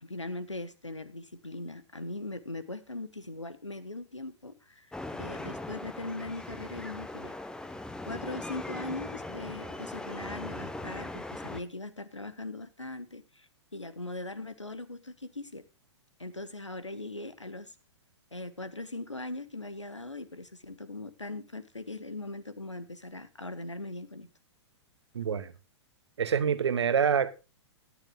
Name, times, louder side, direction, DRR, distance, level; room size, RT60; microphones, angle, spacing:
voice 1, 0.0-7.4 8.1-15.6 16.2-17.7 18.3-24.3, left 2 dB, 85° left, 1.3 m, -40 dB
sound 1, 4.9-11.6, left 2 dB, 5° left, 0.9 m, -40 dB
voice 2, 25.1-25.5 26.2-27.3, right 7 dB, 65° right, 1.3 m, -26 dB
18.0 x 10.5 x 2.3 m
figure-of-eight pair, 105°, 15 cm